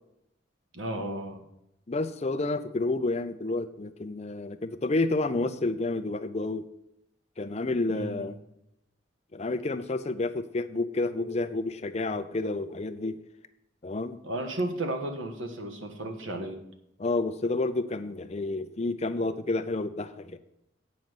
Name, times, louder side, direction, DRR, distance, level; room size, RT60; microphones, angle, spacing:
voice 1, 0.7-1.4 7.9-8.3 14.2-16.6, right 1 dB, 90° right, 5 dB, 1.5 m, -33 dB
voice 2, 1.9-6.6 7.4-8.4 9.3-13.2 13.8-14.2 17.0-20.4, left 2 dB, 35° left, 11 dB, 0.5 m, -30 dB
8.7 x 5.3 x 7.8 m, 0.81 s
head